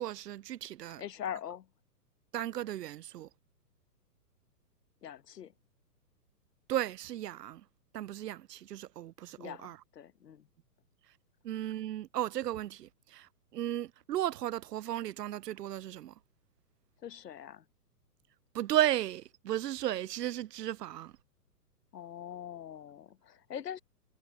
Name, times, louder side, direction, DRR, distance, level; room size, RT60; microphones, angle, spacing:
voice 1, 0.0-1.0 2.3-3.3 6.7-7.6 7.9-9.8 11.4-16.1 18.5-21.1, right 13 dB, 80° right, 0.6 m, -35 dB
voice 2, 1.0-1.7 5.0-5.5 9.4-10.5 17.0-17.6 21.9-23.8, left 9 dB, 80° left, 1.2 m, -43 dB
hypercardioid pair, 140°, 48 cm